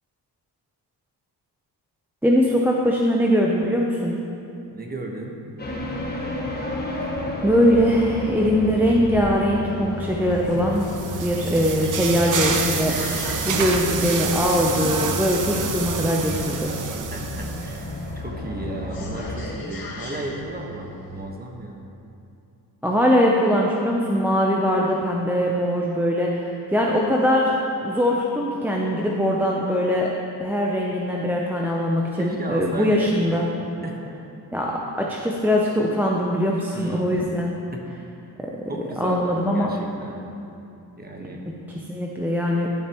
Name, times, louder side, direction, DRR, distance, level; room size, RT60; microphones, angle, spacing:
voice 1, 2.2-4.1 7.4-10.9 11.2-13.1 13.4-16.7 22.8-26.4 26.7-27.5 27.8-30.1 30.4-33.5 34.5-37.5 38.4-38.5 39.0-39.7 41.9-42.7, equal, 5° right, -2 dB, 0.6 m, -21 dB
voice 2, 4.7-5.4 17.1-21.9 32.2-33.4 33.8-34.4 36.7-37.1 37.7-37.9 38.7-40.2 41.0-41.4, right 2 dB, 20° right, 0 dB, 1.2 m, -34 dB
sound 1, 5.6-19.5, left 2 dB, 25° left, 1.3 m, -33 dB
sound 2, 7.0-21.2, left 1 dB, 55° left, 1.7 m, -38 dB
sound 3, 10.4-18.0, right 5 dB, 45° right, 0.8 m, -28 dB
12.0 x 6.7 x 3.0 m, 2.7 s
cardioid pair, 90°, 42 cm